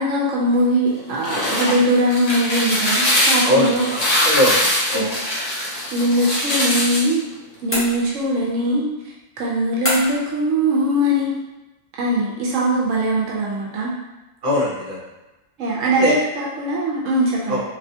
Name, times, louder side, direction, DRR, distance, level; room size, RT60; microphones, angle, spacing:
voice 1, 0.0-3.9 4.9-5.2 5.6-7.2 7.6-8.9 9.4-11.3 12.0-13.9 15.6-17.6, right 1 dB, 80° right, -4 dB, 1.0 m, -21 dB
sound 1, 1.0-7.1, left 1 dB, 40° left, 0.7 m, -22 dB
voice 2, 3.4-4.0 4.2-5.1 14.4-15.0 16.0-16.2 17.5-17.6, left 1 dB, 50° right, -5 dB, 1.0 m, -21 dB
sound 2, 7.7-8.4 9.8-10.3, equal, 10° left, 0.9 m, -26 dB
3.3 x 2.6 x 2.7 m, 1.0 s
omnidirectional pair, 1.3 m